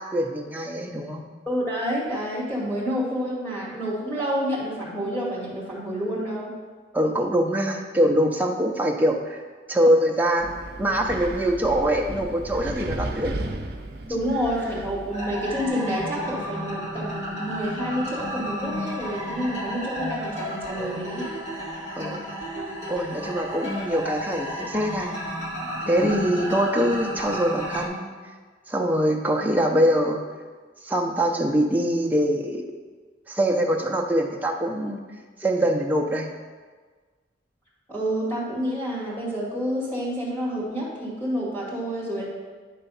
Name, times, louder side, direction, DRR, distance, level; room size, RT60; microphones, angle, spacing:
voice 1, 0.0-1.3 6.9-9.4 9.7-10.5 10.8-13.4 22.0-22.3 22.9-25.2 25.9-28.1 28.7-30.2 30.8-32.6 33.3-35.0 35.4-36.3, equal, 10° right, 1 dB, 0.6 m, -23 dB
voice 2, 1.5-6.5 14.1-21.2 37.9-42.3, equal, 15° left, -7 dB, 2.2 m, -28 dB
Wind, 10.4-15.7, right 1 dB, 55° right, 0.7 m, -34 dB
sound 1, 15.1-27.9, equal, 35° left, 1.6 m, -32 dB
10.0 x 3.4 x 5.5 m, 1.5 s
head